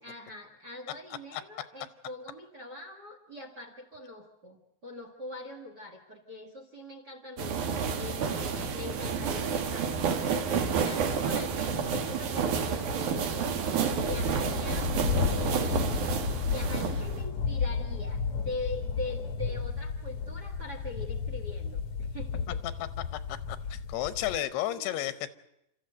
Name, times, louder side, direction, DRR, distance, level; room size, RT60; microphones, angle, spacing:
voice 1, 0.0-13.7 14.1-14.9 15.2-15.9 16.4-22.6 24.3-25.1, left 2 dB, 40° right, 6 dB, 1.5 m, -42 dB
sound 1, 7.4-17.3, right 6 dB, 60° right, 2.7 m, -30 dB
sound 2, 11.8-24.4, left 6 dB, 60° left, 1.6 m, -33 dB
voice 2, 23.5-25.4, left 13 dB, 85° left, 13 dB, 3.0 m, -32 dB
29.5 x 14.0 x 7.9 m, 0.84 s
omnidirectional pair, 4.6 m